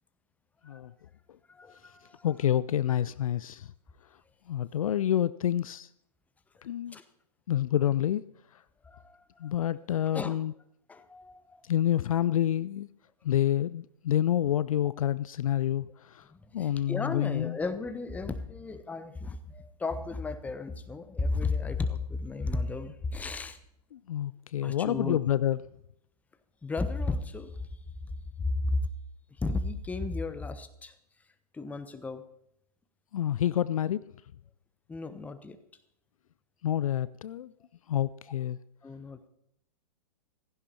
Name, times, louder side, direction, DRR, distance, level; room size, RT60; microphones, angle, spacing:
voice 1, 1.5-2.3 6.6-7.0 8.8-9.5 10.1-10.4 10.9-11.6 16.3-23.6 24.6-25.2 26.6-27.6 28.4-28.8 29.4-30.9 31.5-32.2 34.9-35.6 38.8-39.3, left 3 dB, 5° left, 0.9 m, -34 dB
voice 2, 2.2-3.7 4.5-5.9 6.6-7.0 7.5-8.2 9.4-10.5 11.7-12.9 13.2-16.2 16.5-17.6 23.9-25.6 33.1-34.0 36.6-37.5 37.9-38.6, left 11 dB, 55° left, 0.5 m, -28 dB
16.0 x 15.0 x 4.4 m
figure-of-eight pair, 115°, 21 cm